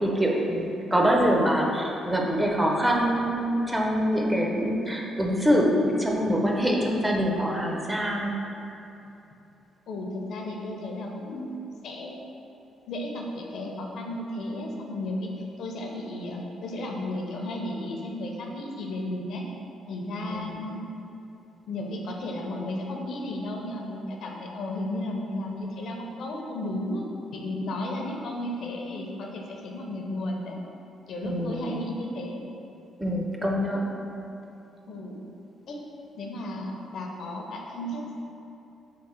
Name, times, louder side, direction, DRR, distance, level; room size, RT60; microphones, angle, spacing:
voice 1, 0.0-8.4 20.2-20.6 31.2-31.8 33.0-33.9, equal, 10° right, -1 dB, 0.5 m, -25 dB
voice 2, 9.9-11.5 11.8-12.2 12.9-15.3 15.6-19.4 19.9-20.8 21.7-27.0 27.3-30.6 31.1-32.4 33.7-33.9 34.9-35.2 35.7-35.8 36.2-38.2, left 1 dB, 70° left, 0 dB, 0.5 m, -34 dB
3.6 x 2.0 x 4.2 m, 2.8 s
cardioid pair, 90°, 0 cm